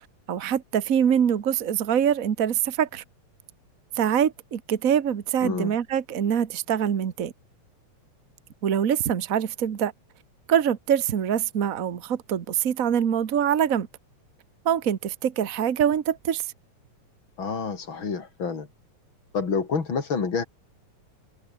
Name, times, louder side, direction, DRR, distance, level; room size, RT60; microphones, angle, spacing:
voice 1, 0.3-3.0 3.9-7.3 8.6-9.9 10.5-13.9 14.6-16.5, right 9 dB, 70° right, 0.8 m, -24 dB
voice 2, 5.4-5.8 17.4-18.7 19.3-20.4, left 5 dB, 40° left, 3.9 m, -28 dB
omnidirectional pair, 3.3 m